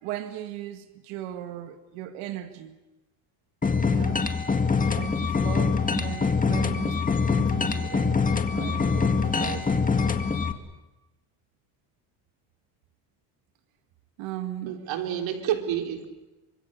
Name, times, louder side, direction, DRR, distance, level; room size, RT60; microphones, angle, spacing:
voice 1, 0.0-2.8 3.8-4.3 4.9-7.0 7.3-9.9 14.2-14.8, right 12 dB, 80° right, 2.0 m, -37 dB
sound 1, 3.6-10.5, left 5 dB, 15° left, 2.0 m, -24 dB
voice 2, 14.7-16.1, right 10 dB, 65° right, 3.7 m, -29 dB
27.5 x 25.0 x 6.5 m
cardioid pair, 110°, 49 cm